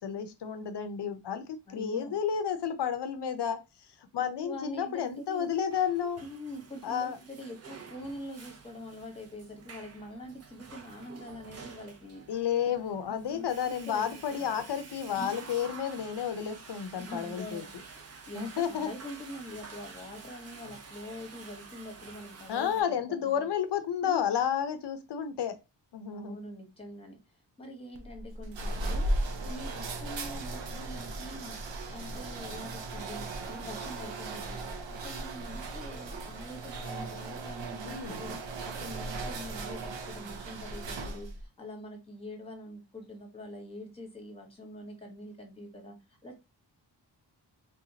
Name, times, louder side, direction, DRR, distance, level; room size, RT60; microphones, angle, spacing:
voice 1, 0.0-3.6 4.0-6.2 6.8-7.2 12.3-17.6 18.4-18.9 22.5-25.6 25.9-26.4 37.8-38.2, left 8 dB, 65° left, 0.6 m, -31 dB
voice 2, 1.7-2.2 4.2-5.5 6.2-12.2 13.1-14.5 17.0-17.7 17.9-23.3 24.0-24.2 26.1-31.6 31.9-34.7 35.0-46.4, left 1 dB, 10° left, 1.0 m, -44 dB
Water / Toilet flush, 5.3-22.8, right 4 dB, 35° right, 0.6 m, -49 dB
sound 1, 27.9-41.4, right 2 dB, 80° right, 0.8 m, -37 dB
3.5 x 2.8 x 2.7 m
wide cardioid pair, 140°, 44 cm